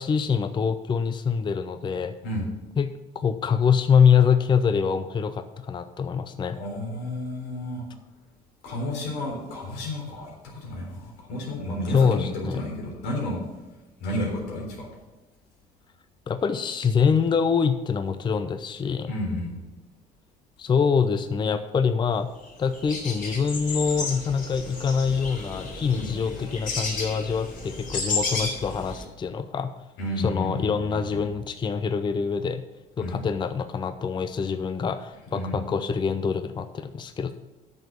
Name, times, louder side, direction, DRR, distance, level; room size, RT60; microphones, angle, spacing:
voice 1, 0.0-2.1 2.8-6.6 11.9-12.6 16.3-19.1 20.6-22.3 22.6-29.7 30.2-32.6 33.0-37.3, left 6 dB, 25° left, 10 dB, 0.5 m, -24 dB
voice 2, 6.5-7.8 8.6-13.4 14.0-14.9 19.1-19.5 25.9-26.1 30.0-31.3 33.0-33.2 35.3-35.6, left 1 dB, 90° left, -1 dB, 3.7 m, -31 dB
sound 1, 22.4-22.5 22.7-29.0, left 3 dB, 55° left, 3.6 m, -32 dB
9.0 x 6.1 x 6.8 m, 1.1 s
cardioid pair, 110°, 17 cm